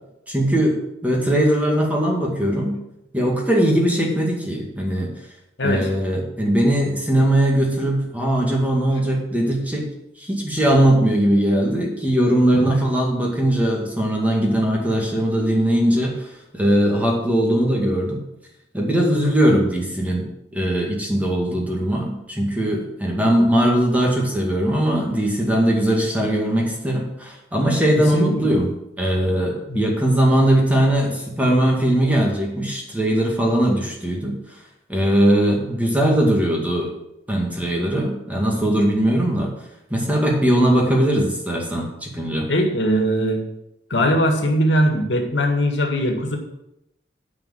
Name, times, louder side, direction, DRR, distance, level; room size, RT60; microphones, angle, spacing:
voice 1, 0.3-2.8 3.1-5.1 5.6-9.9 10.2-18.2 18.7-28.7 29.0-34.6 34.9-36.9 37.3-39.5 39.9-42.5, right 1 dB, 10° right, -1 dB, 2.1 m, -20 dB
voice 2, 28.0-28.5 29.7-29.8 42.5-43.4 43.9-46.4, equal, 85° left, 2 dB, 1.9 m, -20 dB
9.9 x 5.2 x 7.5 m, 0.86 s
head